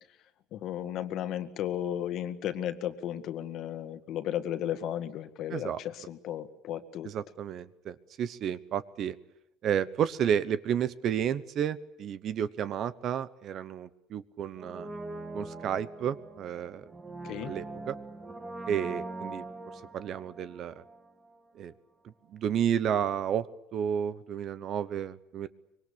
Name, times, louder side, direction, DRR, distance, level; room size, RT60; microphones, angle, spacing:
voice 1, 0.5-7.1 17.2-17.5, left 11 dB, 45° left, 10 dB, 1.9 m, -34 dB
voice 2, 7.0-9.2 9.6-14.9 15.3-16.8 17.5-18.0 18.7-19.4 19.9-20.8 21.5-21.7 22.3-23.5 23.7-25.5, right 9 dB, 40° right, 16 dB, 1.0 m, -31 dB
Brass instrument, 14.5-21.4 21.7-21.8, right 2 dB, 15° right, 1.7 m, -42 dB
25.0 x 23.5 x 8.7 m, 0.85 s
cardioid pair, 165°, 0 cm